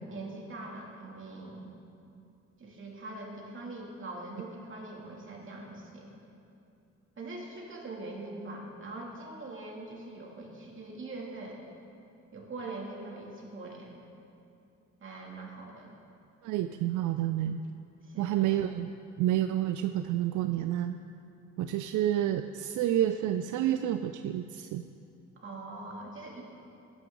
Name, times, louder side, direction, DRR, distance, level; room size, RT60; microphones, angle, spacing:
voice 1, 0.0-1.8 2.6-6.2 7.2-11.6 12.3-14.1 15.0-16.0 18.0-18.6 25.4-26.4, right 2 dB, 40° right, -2 dB, 2.7 m, -42 dB
voice 2, 16.4-17.6 18.2-18.9 19.2-21.0 21.6-24.8, right 12 dB, 80° right, 9 dB, 0.5 m, -29 dB
15.5 x 11.0 x 3.9 m, 2.7 s
cardioid pair, 90°, 30 cm